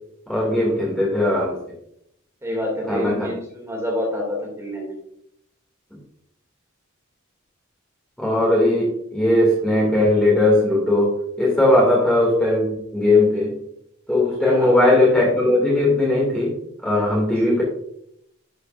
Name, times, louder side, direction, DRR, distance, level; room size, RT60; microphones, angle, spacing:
voice 1, 0.3-1.6 2.9-3.3 8.2-13.6 14.1-16.6 16.8-17.6, left 1 dB, 5° left, -4 dB, 2.1 m, -18 dB
voice 2, 2.4-5.0 14.4-14.7 17.2-17.6, left 1 dB, 15° right, -1 dB, 2.3 m, -28 dB
10.5 x 6.6 x 2.5 m, 0.73 s
head